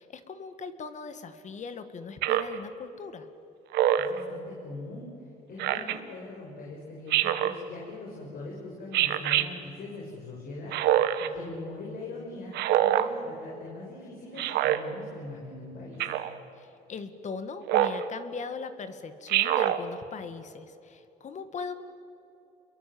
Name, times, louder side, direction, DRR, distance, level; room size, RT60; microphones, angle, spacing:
voice 1, 0.0-3.3 5.5-6.0 11.2-11.6 16.6-21.7, left 5 dB, 45° left, 10 dB, 2.0 m, -40 dB
Speech synthesizer, 2.2-2.6 3.7-4.2 5.6-6.0 7.1-7.6 8.9-9.5 10.7-11.3 12.5-13.1 14.4-14.8 16.0-16.3 17.7-18.0 19.3-19.8, right 12 dB, 80° right, 1.3 m, -24 dB
voice 2, 3.9-16.0, left 2 dB, 60° left, -2 dB, 5.9 m, -42 dB
28.0 x 22.5 x 7.9 m, 2.8 s
cardioid pair, 110°, 17 cm